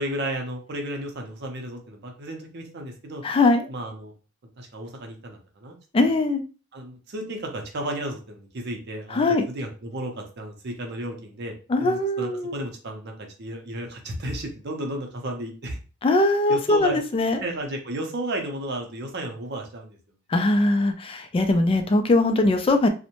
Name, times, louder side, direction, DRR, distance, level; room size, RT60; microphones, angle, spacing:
voice 1, 0.0-3.2 3.7-4.1 4.6-6.1 6.7-11.5 11.8-15.8 16.5-17.0 17.4-20.0, right 1 dB, 55° right, 2 dB, 0.6 m, -33 dB
voice 2, 3.2-3.7 5.9-6.4 9.1-9.5 11.7-12.6 16.0-17.4 20.3-22.9, left 2 dB, 25° left, 6 dB, 0.3 m, -21 dB
2.6 x 2.1 x 2.9 m, 0.35 s
head